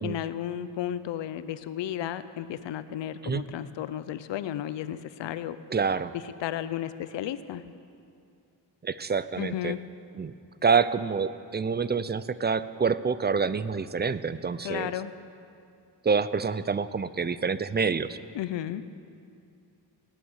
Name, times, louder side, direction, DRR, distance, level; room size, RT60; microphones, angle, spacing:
voice 1, 0.0-5.6 6.1-7.6 9.4-9.8 14.6-15.1 18.3-18.8, left 11 dB, 85° left, 14 dB, 0.6 m, -33 dB
voice 2, 5.7-6.1 8.8-9.7 10.1-10.3 10.6-14.9 16.0-18.2, right 5 dB, 25° right, 15 dB, 0.5 m, -27 dB
18.0 x 9.1 x 6.5 m, 2.5 s
cardioid pair, 85°, 43 cm